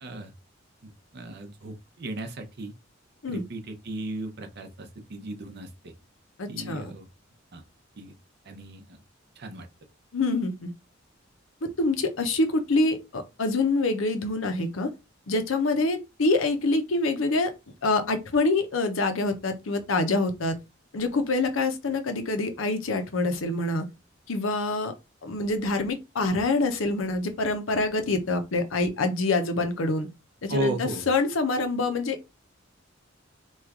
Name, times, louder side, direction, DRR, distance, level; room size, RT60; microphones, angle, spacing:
voice 1, 0.0-0.3 0.8-2.7 3.3-5.9 6.5-7.1 7.5-7.6 8.0-8.1 8.5-9.0 9.4-9.7 30.5-31.1, right 1 dB, 55° right, 0.6 m, -35 dB
voice 2, 6.4-6.9 10.1-10.7 11.6-14.9 15.3-17.5 17.8-20.6 20.9-23.8 24.3-24.9 25.2-30.1 30.4-32.3, left 2 dB, 85° left, 0.7 m, -26 dB
3.0 x 2.3 x 3.5 m
head